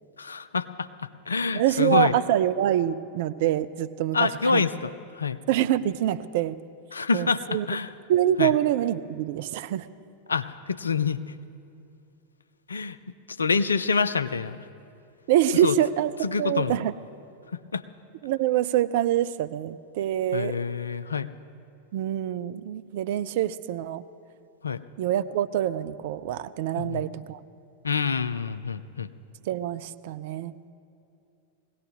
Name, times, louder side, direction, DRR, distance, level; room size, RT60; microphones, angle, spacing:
voice 1, 0.2-0.9 1.3-2.1 4.1-5.4 6.9-7.9 8.4-8.5 10.3-11.2 12.7-13.0 13.4-14.6 15.6-15.8 16.2-16.8 17.7-17.8 20.3-21.3 24.6-24.8 26.7-27.0 27.8-29.1, left 5 dB, 75° left, 12 dB, 0.4 m, -26 dB
voice 2, 1.5-4.6 5.5-6.6 7.1-7.7 8.1-9.9 15.3-16.1 16.4-16.9 18.2-20.6 21.9-24.0 25.0-27.4 29.5-30.7, right 12 dB, 50° right, 13 dB, 0.4 m, -25 dB
21.0 x 17.5 x 3.2 m, 2.6 s
figure-of-eight pair, 90°, 0 cm